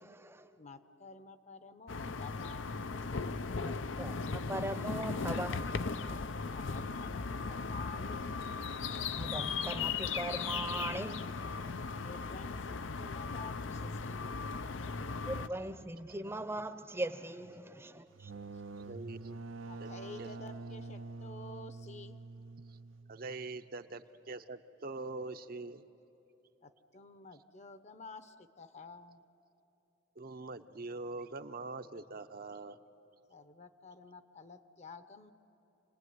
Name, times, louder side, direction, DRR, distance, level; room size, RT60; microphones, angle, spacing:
voice 1, 0.0-0.5 3.6-6.2 9.1-11.8 15.3-18.3, right 1 dB, 15° right, 0.7 m, -40 dB
voice 2, 0.6-2.8 6.5-8.3 12.0-14.4 19.7-22.2 26.6-29.2 33.3-35.3, left 3 dB, 35° left, 0.9 m, -51 dB
sound 1, 1.9-15.5, left 4 dB, 80° left, 0.7 m, -37 dB
sound 2, 18.1-23.6, right 3 dB, 90° right, 0.7 m, -46 dB
voice 3, 18.9-19.4 19.8-19.9 20.2-20.3 23.1-25.8 30.2-32.8, right 3 dB, 50° right, 0.7 m, -43 dB
28.0 x 19.5 x 9.5 m
head